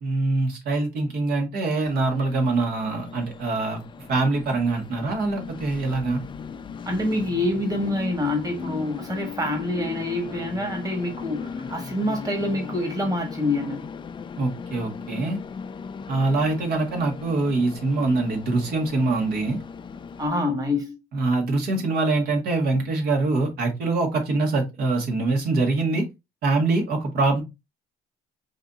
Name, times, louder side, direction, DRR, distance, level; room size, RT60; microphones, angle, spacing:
voice 1, 0.0-6.2 14.4-15.4 16.1-19.6 21.1-26.0 26.4-27.4, right 3 dB, 65° right, 1.6 m, -24 dB
Train, 1.8-20.3, left 6 dB, 30° left, 0.4 m, -38 dB
voice 2, 6.9-13.8 20.2-21.0, left 1 dB, 20° right, 1.5 m, -26 dB
4.8 x 2.8 x 3.6 m
cardioid pair, 110°, 17 cm